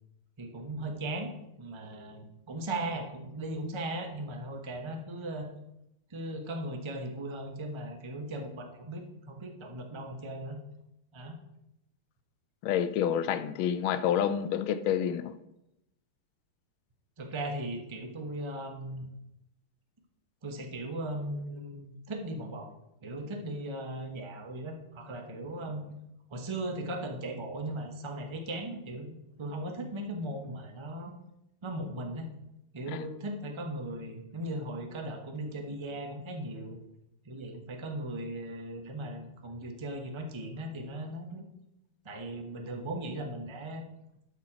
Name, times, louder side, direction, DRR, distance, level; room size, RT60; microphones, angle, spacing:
voice 1, 0.4-1.3 1.6-5.5 6.1-10.6 11.1-11.3 17.2-19.1 20.4-22.7 23.0-25.9 26.3-29.1 29.4-31.1 31.6-32.3 32.7-36.8 37.2-41.5 42.0-43.8, right 1 dB, 30° right, 0.5 m, -38 dB
voice 2, 12.6-15.3 32.9-33.0, left 9 dB, 75° left, 1.3 m, -28 dB
12.5 x 4.4 x 4.9 m
omnidirectional pair, 2.4 m